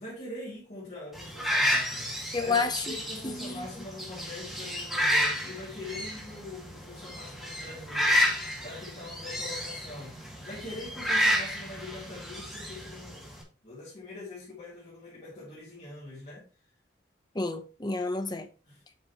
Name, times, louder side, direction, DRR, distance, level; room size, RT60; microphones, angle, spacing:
voice 1, 0.0-13.3 13.6-16.5 18.7-18.8, left 2 dB, 40° left, 3.2 m, -43 dB
sound 1, 1.1-13.4, equal, ahead, 2.3 m, -31 dB
voice 2, 2.3-2.9 3.2-3.7 17.3-18.5, left 3 dB, 25° left, 0.9 m, -30 dB
8.3 x 6.1 x 3.0 m
head